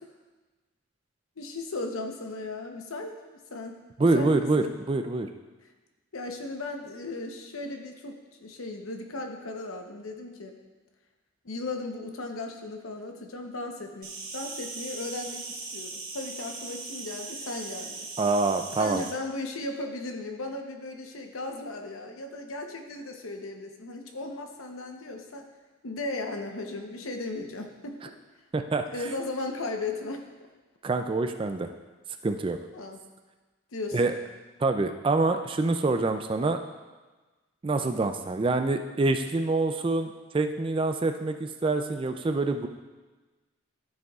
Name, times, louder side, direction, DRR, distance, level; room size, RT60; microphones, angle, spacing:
voice 1, 1.4-3.1 3.5-4.7 6.1-10.6 11.4-18.1 18.8-25.5 25.8-28.0 28.9-30.3 32.7-33.0 33.7-34.2, left 2 dB, 75° left, 4 dB, 0.9 m, -36 dB
voice 2, 4.0-5.3 18.2-19.0 28.5-28.8 30.8-31.7 32.2-32.6 33.9-34.1 34.6-36.6 37.6-42.7, right 3 dB, 25° right, 7 dB, 0.3 m, -26 dB
Insect, 14.0-19.1, right 4 dB, 45° right, 1.3 m, -39 dB
12.0 x 6.4 x 2.4 m, 1.2 s
head